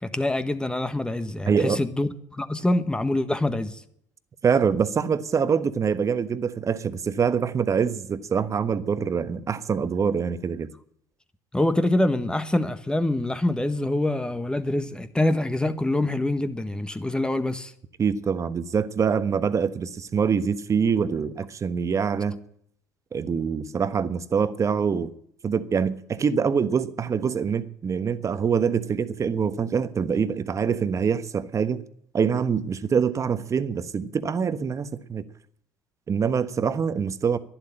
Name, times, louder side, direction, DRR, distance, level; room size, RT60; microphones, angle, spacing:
voice 1, 0.0-3.8 11.5-17.7, left 1 dB, 10° left, 1.4 m, -25 dB
voice 2, 1.5-1.8 4.4-10.7 18.0-22.4 23.1-25.1 25.4-31.8 32.1-35.2 36.1-37.4, right 6 dB, 35° right, 1.2 m, -25 dB
11.5 x 11.0 x 8.8 m
hypercardioid pair, 65°, 9 cm